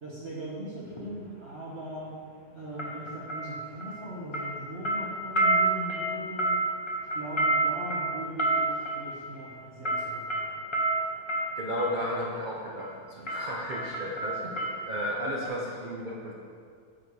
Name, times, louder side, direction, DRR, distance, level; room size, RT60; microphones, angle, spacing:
voice 1, 0.0-2.2 2.5-6.7 7.1-10.5 14.4-14.5, right 1 dB, 45° right, -8 dB, 1.4 m, -40 dB
sound 1, 0.8-1.1 2.8-4.1 4.3-12.0 12.8-13.0 13.3-15.2 15.5-15.6, right 2 dB, 25° left, 0.6 m, -29 dB
voice 2, 11.6-14.4 14.9-16.3, equal, 60° right, -3 dB, 0.5 m, -33 dB
7.8 x 5.0 x 4.7 m, 2.2 s
omnidirectional pair, 1.8 m